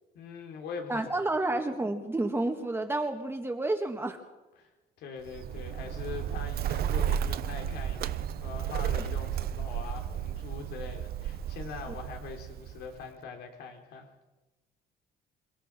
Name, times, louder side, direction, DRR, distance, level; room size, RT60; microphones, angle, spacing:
voice 1, 0.1-1.3 4.6-4.7 5.0-14.1, left 5 dB, 80° left, 3 dB, 3.7 m, -42 dB
voice 2, 0.9-4.2 11.9-12.0, right 2 dB, 15° right, 4 dB, 1.8 m, -30 dB
Bird, 5.3-13.1, right 9 dB, 65° right, 1.2 m, -33 dB
28.0 x 16.5 x 6.2 m, 1.1 s
cardioid pair, 110°, 17 cm